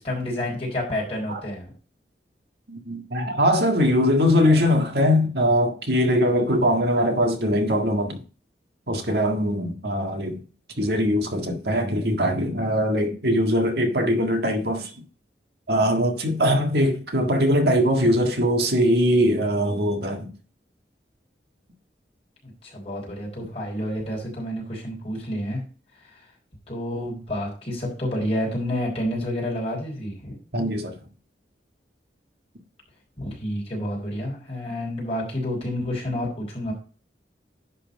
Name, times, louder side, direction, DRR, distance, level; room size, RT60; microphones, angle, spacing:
voice 1, 0.0-1.7 22.4-25.6 26.7-30.4 33.2-36.7, left 1 dB, 35° left, 4.6 m, -29 dB
voice 2, 2.7-8.2 8.9-10.4 10.8-14.9 15.7-20.3 30.5-31.0, equal, 70° right, 1.7 m, -21 dB
10.5 x 4.4 x 5.3 m
head